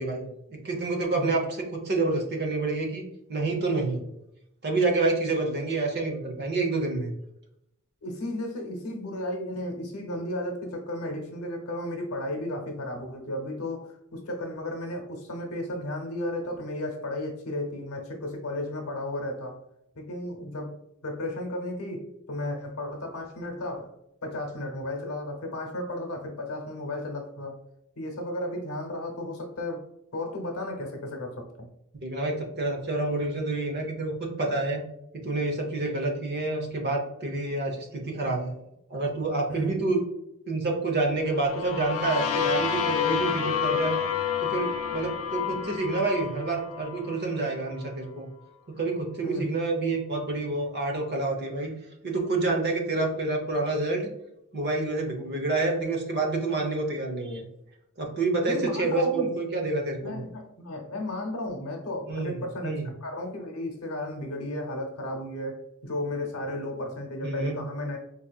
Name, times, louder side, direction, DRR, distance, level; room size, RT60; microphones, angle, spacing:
voice 1, 0.0-1.4 1.7-4.0 4.6-7.1 32.0-34.8 35.1-38.5 38.9-40.0 40.5-44.0 44.4-48.3 48.8-51.7 52.0-54.1 54.5-57.5 58.0-60.2 62.1-62.9 67.2-67.6, right 3 dB, 50° right, 1 dB, 0.7 m, -28 dB
voice 2, 8.0-19.5 19.9-23.9 24.2-27.6 27.9-29.9 30.1-31.7 35.8-35.9 39.5-39.7 49.2-49.5 58.5-59.4 60.0-68.0, left 1 dB, 85° left, 2 dB, 0.8 m, -34 dB
sound 1, 41.3-47.2, left 8 dB, 70° left, 0.4 m, -29 dB
3.9 x 2.7 x 2.3 m, 0.82 s
head